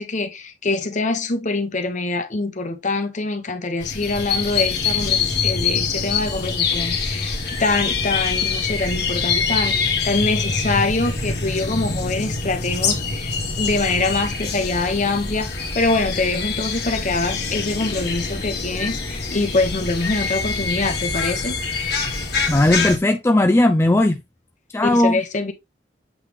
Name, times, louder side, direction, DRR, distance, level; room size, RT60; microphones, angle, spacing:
voice 1, 0.0-21.6 24.8-25.5, left 3 dB, 45° left, 1.0 m, -24 dB
sound 1, 3.8-23.0, left 4 dB, 65° left, 1.8 m, -25 dB
voice 2, 22.5-24.2 24.7-25.2, left 1 dB, 15° left, 0.4 m, -17 dB
8.0 x 3.4 x 3.5 m
head